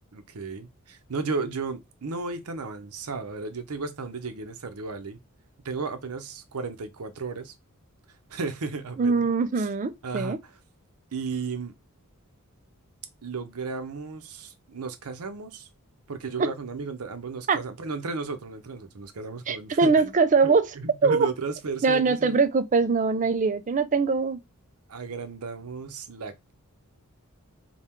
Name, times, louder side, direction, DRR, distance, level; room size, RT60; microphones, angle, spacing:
voice 1, 0.1-5.2 5.6-7.5 8.3-9.7 10.0-10.6 11.1-11.7 13.2-15.7 16.1-20.1 20.4-22.4 24.9-26.5, right 4 dB, 75° right, 0.7 m, -34 dB
voice 2, 9.0-10.4 16.4-16.5 17.5-17.6 19.5-20.7 21.0-21.3 21.8-24.4, right 4 dB, 35° right, 0.4 m, -22 dB
3.6 x 2.3 x 4.3 m
head